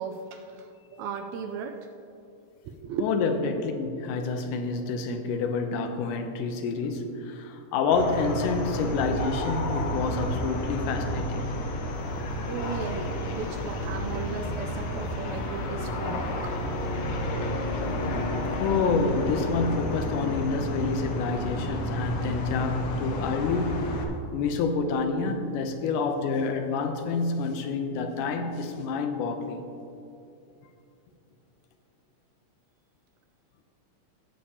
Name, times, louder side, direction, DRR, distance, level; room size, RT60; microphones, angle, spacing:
voice 1, 0.0-1.8 2.7-3.1 12.4-16.5, right 6 dB, 80° right, 5 dB, 1.7 m, -36 dB
voice 2, 3.0-11.4 18.6-24.0 24.3-29.6, left 4 dB, 90° left, 6 dB, 2.3 m, -28 dB
sound 1, 7.9-24.0, left 1 dB, 70° left, 1.4 m, -31 dB
18.0 x 6.7 x 2.8 m, 2.8 s
omnidirectional pair, 3.6 m